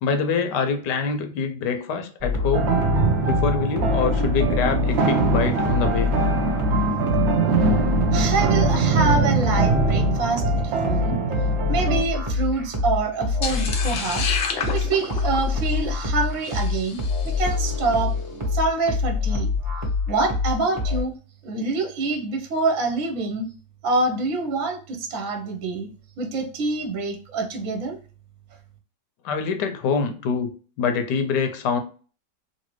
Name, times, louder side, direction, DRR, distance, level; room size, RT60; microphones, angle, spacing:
voice 1, 0.0-2.8 3.3-6.1 29.2-30.5 30.8-31.8, left 5 dB, 90° left, 7 dB, 1.2 m, -25 dB
sound 1, 2.2-21.0, left 4 dB, 30° right, 0.6 m, -26 dB
sound 2, 2.5-12.0, right 4 dB, 80° right, 0.6 m, -22 dB
voice 2, 8.1-11.2 11.7-14.2 14.7-17.0 17.2-18.1 18.4-19.5 20.1-21.1 21.4-23.5 23.8-25.9 26.2-28.0, right 3 dB, 60° right, 3 dB, 1.0 m, -26 dB
sound 3, 13.4-17.7, left 5 dB, 70° left, 0.5 m, -31 dB
3.1 x 2.7 x 3.0 m, 0.39 s
omnidirectional pair, 1.8 m